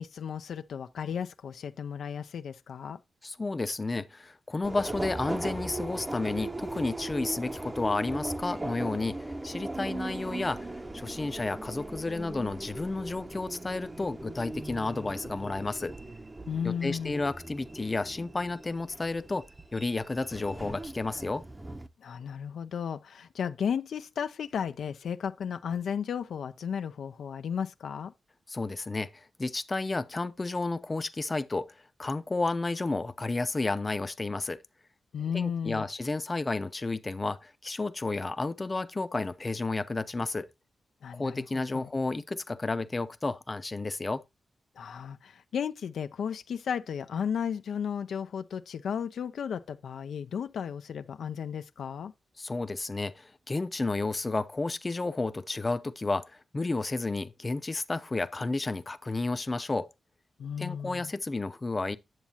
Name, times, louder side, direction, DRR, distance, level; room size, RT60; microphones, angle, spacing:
voice 1, 0.0-3.0 16.5-17.2 22.0-28.1 35.1-35.9 41.0-41.4 41.7-41.9 44.8-52.1 60.4-61.1, left 7 dB, 80° left, 0.4 m, -34 dB
voice 2, 3.2-10.7 10.9-16.0 16.6-19.5 19.7-21.4 28.5-34.6 35.3-40.5 41.1-44.2 52.4-59.9 60.6-62.0, left 3 dB, 30° left, 0.6 m, -32 dB
Subway metro underground, 4.6-21.9, right 2 dB, 20° right, 0.7 m, -39 dB
9.1 x 7.2 x 2.8 m
cardioid pair, 80°, 0 cm